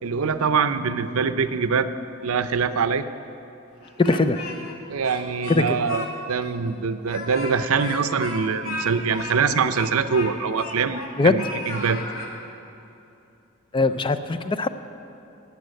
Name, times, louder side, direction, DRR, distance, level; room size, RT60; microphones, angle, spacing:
voice 1, 0.0-1.9 2.2-3.0 4.9-6.0 6.3-12.0, right 5 dB, 85° right, 11 dB, 0.6 m, -24 dB
Speech, 3.8-4.7 5.0-6.1 6.4-6.5 7.0-11.1 11.4-12.3, left 2 dB, 80° left, 1.8 m, -34 dB
voice 2, 4.0-4.5 5.5-5.8 11.2-11.4 13.7-14.7, left 3 dB, 25° left, 10 dB, 0.4 m, -21 dB
13.0 x 8.3 x 9.2 m, 2.8 s
head